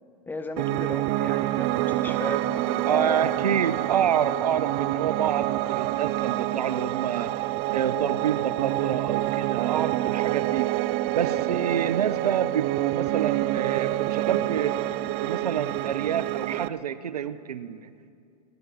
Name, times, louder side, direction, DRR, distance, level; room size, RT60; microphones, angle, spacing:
voice 1, 0.3-3.3, left 3 dB, 10° left, 9 dB, 0.8 m, -35 dB
Piano, 0.6-16.7, right 16 dB, 35° right, 0.4 m, -27 dB
voice 2, 2.9-7.3 7.7-10.8 11.1-14.8 15.2-17.9, right 8 dB, 75° right, 15 dB, 0.6 m, -28 dB
17.0 x 10.5 x 5.9 m, 2.5 s
hypercardioid pair, 110°, 20 cm